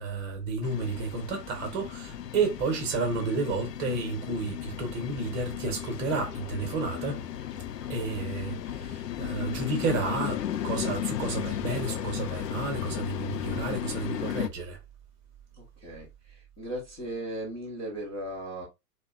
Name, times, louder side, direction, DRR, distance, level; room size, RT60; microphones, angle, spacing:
voice 1, 0.0-7.2 7.9-14.8, right 3 dB, 25° right, 0.9 m, -31 dB
sound 1, 0.6-14.5, left 11 dB, 75° left, 0.5 m, -35 dB
sound 2, 5.2-12.1, left 3 dB, 40° left, 0.8 m, -51 dB
voice 2, 15.6-18.7, right 1 dB, 10° left, 0.4 m, -37 dB
2.6 x 2.2 x 2.5 m
figure-of-eight pair, 110°, 49 cm